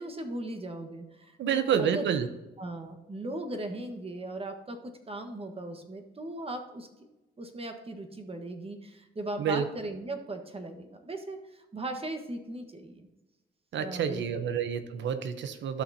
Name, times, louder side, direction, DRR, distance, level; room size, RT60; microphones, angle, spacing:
voice 1, 0.0-2.2 2.6-6.9 7.4-13.1 13.7-14.5, right 2 dB, 30° right, 5 dB, 1.4 m, -38 dB
voice 2, 1.4-2.3 9.4-9.7 13.7-15.8, right 7 dB, 70° right, 10 dB, 0.9 m, -28 dB
13.0 x 6.0 x 2.8 m, 1.1 s
cardioid pair, 70°, 19 cm